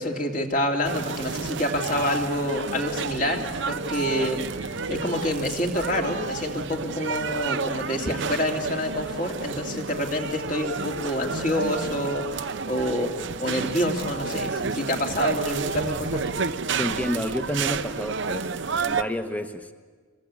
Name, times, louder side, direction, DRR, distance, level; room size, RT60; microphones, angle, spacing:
voice 1, 0.0-16.2, left 1 dB, 40° left, 2 dB, 2.8 m, -27 dB
sound 1, 0.8-19.0, right 5 dB, 55° right, 0.7 m, -30 dB
voice 2, 16.8-19.7, left 1 dB, 5° left, 8 dB, 1.2 m, -30 dB
26.5 x 23.0 x 8.4 m, 1.5 s
head